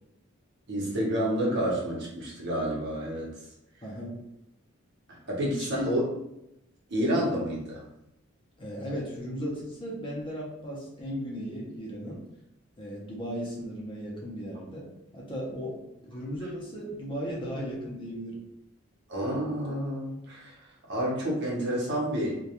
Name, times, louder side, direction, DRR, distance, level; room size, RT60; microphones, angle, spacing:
voice 1, 0.7-3.3 5.1-6.0 6.9-7.8 19.1-20.6 20.9-22.4, equal, 55° right, -4 dB, 0.8 m, -29 dB
voice 2, 3.8-4.3 5.5-6.0 8.6-12.2 12.8-14.9 15.1-18.4, equal, 25° left, -4 dB, 0.6 m, -36 dB
2.2 x 2.2 x 2.8 m, 0.87 s
head